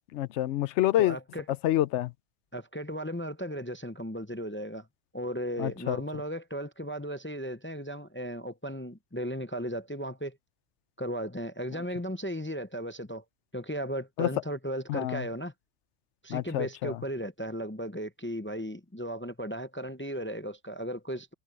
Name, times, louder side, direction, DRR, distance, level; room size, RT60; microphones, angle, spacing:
voice 1, 0.1-1.2 1.6-2.1 5.6-6.0 14.2-14.3 14.9-15.2 16.3-17.0, left 14 dB, 75° left, 0.8 m, -27 dB
voice 2, 1.0-1.5 2.5-4.9 5.1-10.4 11.0-13.2 13.5-15.5 16.2-21.3, equal, 15° left, 0.4 m, -36 dB
omnidirectional pair, 1.2 m